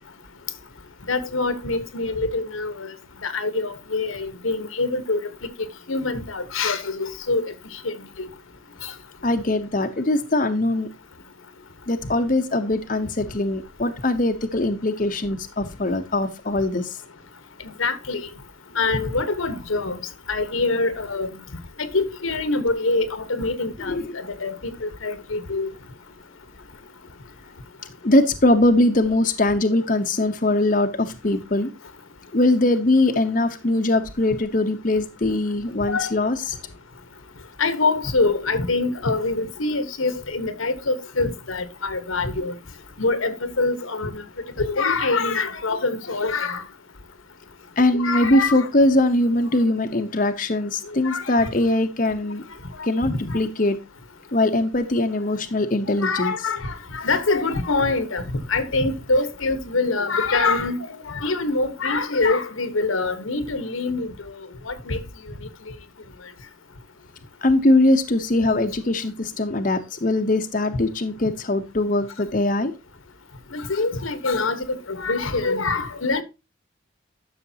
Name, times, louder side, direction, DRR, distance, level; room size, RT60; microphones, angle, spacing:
voice 1, 1.1-2.9 3.2-5.2 5.9-7.4 7.8-7.9 8.2-8.3 8.8-8.9 17.8-18.2 18.7-20.0 20.3-21.3 21.8-24.6 24.8-25.7 35.9-36.1 37.6-42.5 43.0-44.2 44.6-46.6 47.9-48.7 51.0-51.5 53.0-53.4 56.0-64.1 64.7-65.0 73.5-76.2, left 3 dB, 85° left, 1.1 m, -24 dB
voice 2, 9.2-10.9 11.9-17.0 23.8-24.2 28.0-31.7 32.3-36.6 47.8-52.4 52.8-53.8 54.3-56.3 67.4-72.7, left 2 dB, 40° left, 0.8 m, -21 dB
11.5 x 6.5 x 2.8 m
head